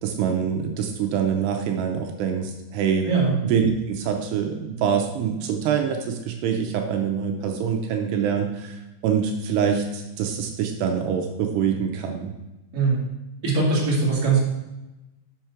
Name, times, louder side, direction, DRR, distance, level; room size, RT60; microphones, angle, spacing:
voice 1, 0.0-3.1 3.4-12.3, right 7 dB, 80° right, 3 dB, 2.8 m, -25 dB
voice 2, 13.4-14.4, right 4 dB, 30° right, -5 dB, 1.7 m, -21 dB
6.9 x 5.7 x 5.8 m, 1.0 s
omnidirectional pair, 5.0 m